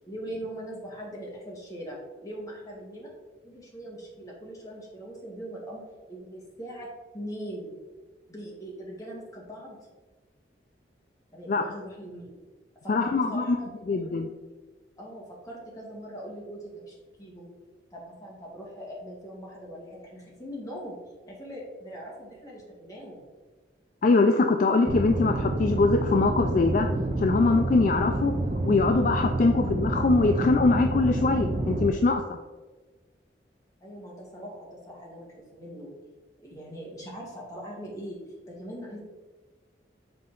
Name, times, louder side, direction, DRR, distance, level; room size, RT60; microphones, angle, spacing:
voice 1, 0.1-3.1 3.4-5.8 6.1-7.7 8.3-9.8 11.3-12.3 12.8-14.2 15.0-17.5 17.9-21.0 21.3-23.2 33.8-35.9 36.4-38.2 38.5-39.0, equal, 20° left, -4 dB, 1.8 m, -41 dB
voice 2, 12.9-13.6 13.9-14.3 24.0-26.9 27.2-28.4 28.6-32.4, left 3 dB, 45° left, 5 dB, 0.3 m, -23 dB
sound 1, 24.9-31.9, right 2 dB, 35° right, 0.5 m, -28 dB
6.8 x 4.2 x 3.8 m, 1.3 s
head